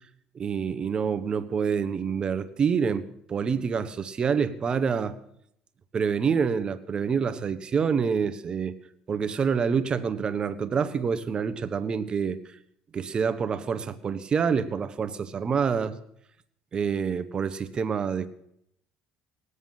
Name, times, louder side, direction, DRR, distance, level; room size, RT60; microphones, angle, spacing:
voice 1, 0.3-5.2 5.9-8.7 9.1-12.6 12.9-15.9 16.7-18.3, right 6 dB, 35° right, 11 dB, 1.3 m, -27 dB
19.5 x 8.3 x 7.5 m, 0.72 s
supercardioid pair, 95°, 3 cm